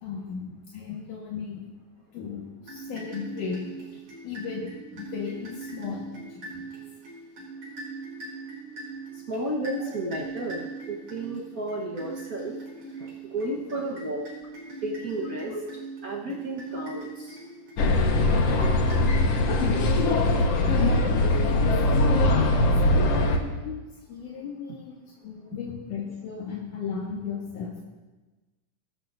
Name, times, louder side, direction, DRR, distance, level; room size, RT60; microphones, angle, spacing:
voice 1, 0.0-1.7 2.1-3.6 4.2-6.6 9.8-9.9 15.5-15.6 19.7-22.3 22.8-23.8 24.1-27.8, left 6 dB, 75° left, -3 dB, 3.0 m, -36 dB
sound 1, 2.6-21.8, right 4 dB, 60° right, 5.0 m, -41 dB
voice 2, 9.1-12.5 13.0-14.3 14.8-15.5 16.0-17.4, right 1 dB, 80° right, -3 dB, 0.8 m, -32 dB
sound 2, 17.8-23.4, left 2 dB, 60° left, 2.0 m, -21 dB
22.0 x 12.0 x 2.6 m, 1.2 s
omnidirectional pair, 3.7 m